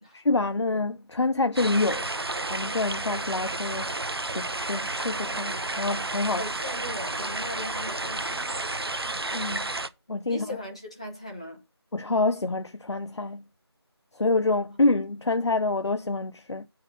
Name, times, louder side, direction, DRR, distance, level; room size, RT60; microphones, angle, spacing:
voice 1, 0.1-2.1 2.5-4.0 4.3-6.4 9.3-9.7 10.1-10.6 11.9-13.4 14.1-16.7, left 3 dB, 85° left, 0.7 m, -27 dB
sound 1, 1.6-9.9, right 2 dB, 65° right, 0.8 m, -31 dB
voice 2, 6.4-8.4 10.3-11.6, left 1 dB, 15° left, 0.9 m, -38 dB
8.2 x 4.8 x 5.7 m
figure-of-eight pair, 180°, 14 cm